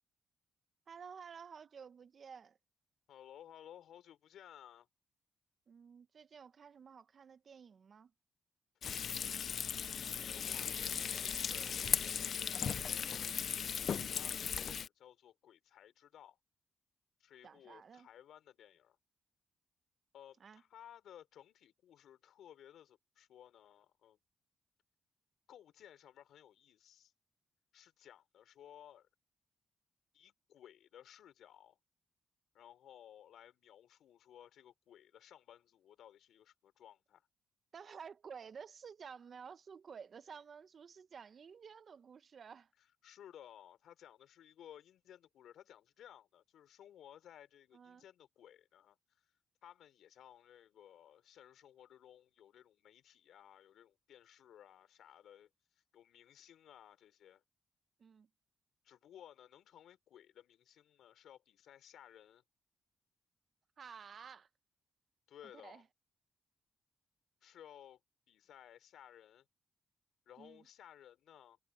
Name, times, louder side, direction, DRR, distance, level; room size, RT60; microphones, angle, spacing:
voice 1, 0.9-2.6 5.7-8.1 17.4-18.1 20.4-20.6 37.7-42.7 47.7-48.0 58.0-58.3 63.8-64.5 65.5-65.8 70.4-70.7, right 6 dB, 55° right, 0.9 m, -52 dB
voice 2, 3.1-4.9 9.2-9.5 10.2-12.0 12.6-16.4 17.2-19.0 20.1-24.2 25.5-27.1 27.7-29.1 30.1-31.8 32.5-37.2 42.8-49.3 49.6-55.5 55.9-57.4 58.8-62.4 65.3-65.8 67.4-68.0 68.3-69.5 70.3-71.6, left 10 dB, 80° left, 3.7 m, -58 dB
Frying (food), 8.8-14.9, left 7 dB, 65° left, 0.5 m, -37 dB
cardioid pair, 70°, 0 cm